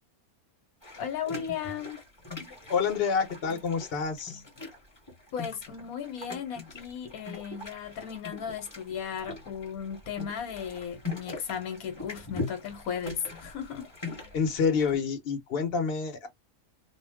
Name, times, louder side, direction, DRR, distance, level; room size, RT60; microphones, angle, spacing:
sound 1, 0.8-15.0, left 3 dB, 20° left, 1.1 m, -41 dB
voice 1, 1.0-2.0 5.3-13.9, left 8 dB, 80° left, 1.2 m, -36 dB
voice 2, 2.7-4.4 14.3-16.3, left 6 dB, 45° left, 0.9 m, -28 dB
2.5 x 2.1 x 3.3 m
omnidirectional pair, 1.5 m